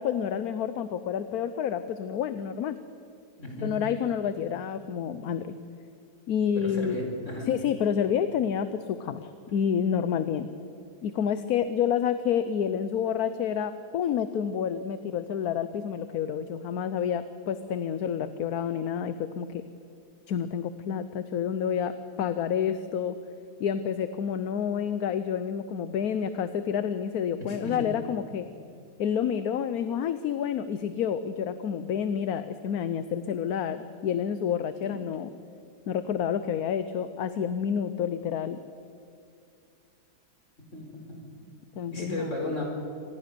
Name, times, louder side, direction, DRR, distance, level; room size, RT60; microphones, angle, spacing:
voice 1, 0.0-2.8 3.6-5.5 6.3-7.0 7.5-10.5 11.0-19.6 20.3-23.2 23.6-28.5 29.0-35.3 35.9-38.6 41.8-42.3, left 8 dB, 70° left, 11 dB, 1.3 m, -29 dB
voice 2, 3.4-3.7 6.5-7.5 27.5-27.9 40.7-40.8 41.1-41.5 41.9-42.6, left 1 dB, 50° left, 1 dB, 5.0 m, -34 dB
26.0 x 19.5 x 6.8 m, 2.5 s
omnidirectional pair, 1.7 m